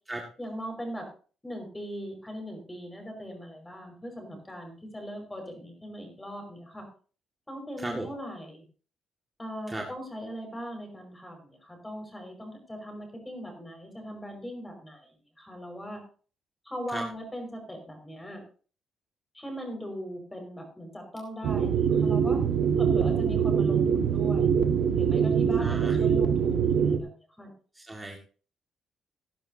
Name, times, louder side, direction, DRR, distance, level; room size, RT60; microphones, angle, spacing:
voice 1, 0.4-1.1 1.4-6.9 7.5-8.6 9.4-16.0 16.6-18.4 19.3-22.4 22.7-24.6 24.9-27.5, equal, 15° left, 4 dB, 5.4 m, -39 dB
sound 1, 21.4-27.0, right 7 dB, 75° right, 1.6 m, -24 dB
voice 2, 25.6-26.1 27.7-28.2, right 1 dB, 15° right, 0 dB, 1.9 m, -36 dB
18.0 x 10.5 x 2.8 m, 0.39 s
cardioid pair, 90°, 0 cm